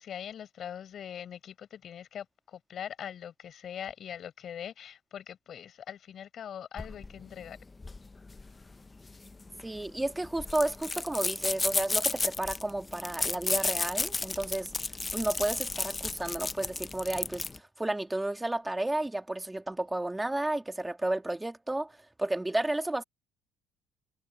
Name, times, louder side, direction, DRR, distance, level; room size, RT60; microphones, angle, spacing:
voice 1, 0.0-7.6, left 9 dB, 50° left, 7.4 m, -42 dB
sound 1, 6.8-17.6, left 3 dB, 20° left, 0.7 m, -33 dB
voice 2, 9.6-14.7 15.1-17.4 17.8-23.0, right 1 dB, 10° right, 1.7 m, -32 dB
cardioid pair, 100°, 0 cm